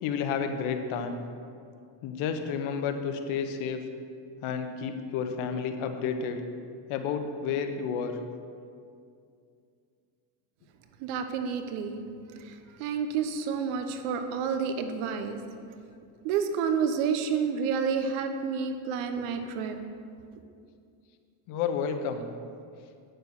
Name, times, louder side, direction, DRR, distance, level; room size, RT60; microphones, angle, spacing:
voice 1, 0.0-1.2 2.0-3.8 4.4-6.4 6.9-8.2 21.5-22.3, left 6 dB, 75° left, 7 dB, 1.1 m, -31 dB
voice 2, 11.0-12.0 12.4-15.4 16.2-19.8, right 6 dB, 80° right, 7 dB, 1.0 m, -29 dB
9.3 x 6.8 x 5.9 m, 2.4 s
supercardioid pair, 100°, 50 cm